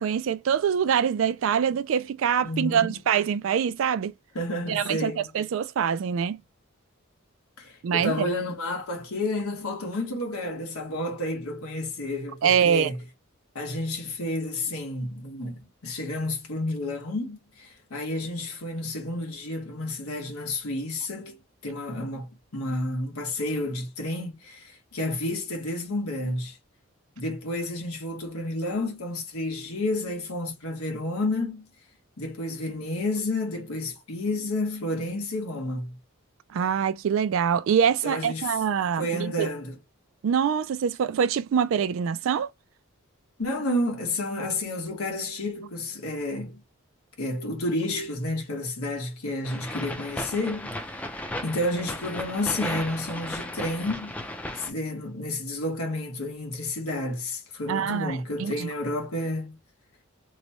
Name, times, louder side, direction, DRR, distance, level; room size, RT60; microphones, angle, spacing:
voice 1, 0.0-4.1 4.7-6.4 7.8-8.2 12.4-12.9 36.5-39.5 40.2-42.5 57.7-58.7, right 7 dB, 65° right, 0.3 m, -24 dB
voice 2, 2.4-2.9 4.3-5.3 7.6-13.0 13.5-21.4 21.6-26.6 27.2-31.6 32.2-36.0 38.0-38.5 39.0-39.8 43.4-46.6 47.2-50.7 51.4-54.3 54.5-59.6, left 1 dB, 90° left, 1.3 m, -30 dB
sound 1, 49.4-54.7, left 1 dB, 5° left, 0.4 m, -35 dB
3.1 x 2.2 x 4.0 m
head